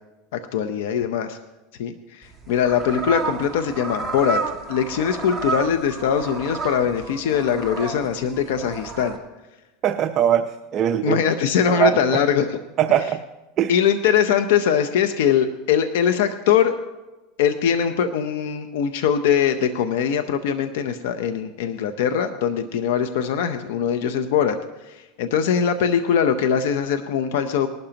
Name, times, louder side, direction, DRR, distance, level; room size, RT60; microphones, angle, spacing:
voice 1, 0.3-1.4 1.8-4.4 4.7-9.1 11.0-12.6 13.7-16.7 17.4-24.6 24.8-27.7, left 8 dB, 75° left, 8 dB, 0.8 m, -22 dB
sound 1, 2.2-9.2, right 4 dB, 5° right, 2.0 m, -31 dB
voice 2, 9.8-10.5 10.7-11.2 11.7-12.2 12.8-13.2 13.6-13.7, right 10 dB, 40° right, 6 dB, 0.7 m, -20 dB
20.0 x 12.0 x 2.9 m, 1.1 s
supercardioid pair, 130°, 0 cm